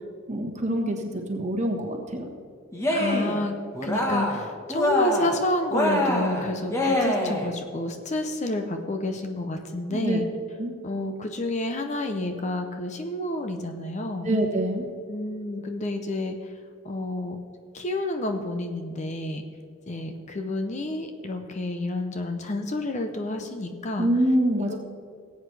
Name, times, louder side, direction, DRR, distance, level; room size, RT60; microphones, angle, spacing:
voice 1, 0.3-1.0 1.3-2.3 9.9-10.2 10.6-10.7 14.2-14.8 24.0-24.8, right 1 dB, 35° right, 3 dB, 1.3 m, -25 dB
Cheering, 2.7-3.4 3.7-4.4 4.7-5.4 5.7-7.5, left 1 dB, 15° left, 1.2 m, -25 dB
voice 2, 2.9-10.3 10.8-14.3 15.1-16.4 16.8-17.4 17.7-19.4 19.9-24.1 24.6-24.8, left 1 dB, 35° left, 6 dB, 0.6 m, -29 dB
19.0 x 8.2 x 3.3 m, 2.2 s
head